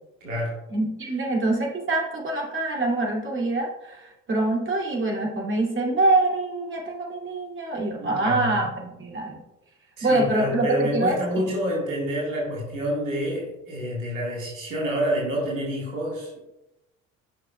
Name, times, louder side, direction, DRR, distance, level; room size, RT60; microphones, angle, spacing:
voice 1, 0.2-0.6 1.1-1.2 8.0-8.7 10.0-16.4, equal, 85° right, -3 dB, 1.8 m, -28 dB
voice 2, 0.7-9.4 10.0-11.2, right 2 dB, 30° right, -2 dB, 2.5 m, -25 dB
11.5 x 6.0 x 2.3 m, 0.91 s
figure-of-eight pair, 55°, 39 cm